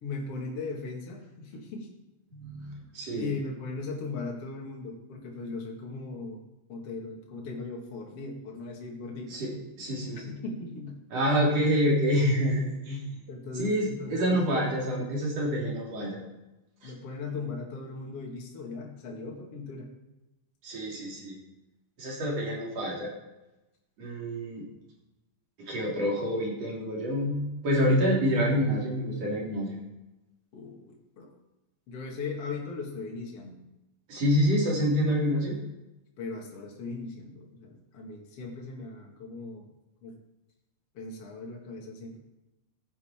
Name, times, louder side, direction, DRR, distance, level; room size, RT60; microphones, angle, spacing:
voice 1, 0.0-1.9 3.1-6.4 6.7-9.3 10.1-11.0 13.3-14.6 16.8-19.9 30.5-31.3 31.9-33.6 36.2-39.7 40.0-40.2 40.9-42.2, left 3 dB, 45° left, -1 dB, 2.6 m, -38 dB
voice 2, 2.3-2.7 2.9-3.3 9.3-9.5 9.8-10.3 11.1-13.0 13.6-16.2 16.8-16.9 20.6-21.4 22.0-23.1 24.0-24.6 25.6-29.8 34.1-35.5, equal, 45° right, -3 dB, 4.2 m, -27 dB
14.5 x 9.1 x 4.4 m, 0.98 s
omnidirectional pair, 4.3 m